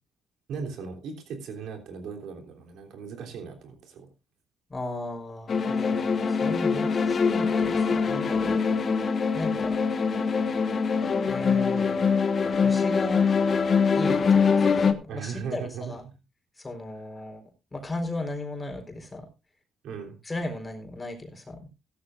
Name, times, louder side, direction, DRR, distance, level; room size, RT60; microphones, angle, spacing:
voice 1, 0.5-4.1 15.1-15.9 19.8-20.2, right 6 dB, 80° right, 4 dB, 3.3 m, -37 dB
voice 2, 4.7-8.6 9.3-9.8 11.3-12.2 12.4-13.2 13.9-16.0 16.6-17.4 17.7-19.3 20.2-21.6, left 2 dB, 25° left, 3 dB, 4.1 m, -35 dB
sound 1, 5.5-14.9, left 5 dB, 45° left, 1.3 m, -23 dB
16.0 x 13.0 x 2.5 m, 0.27 s
cardioid pair, 90°, 0 cm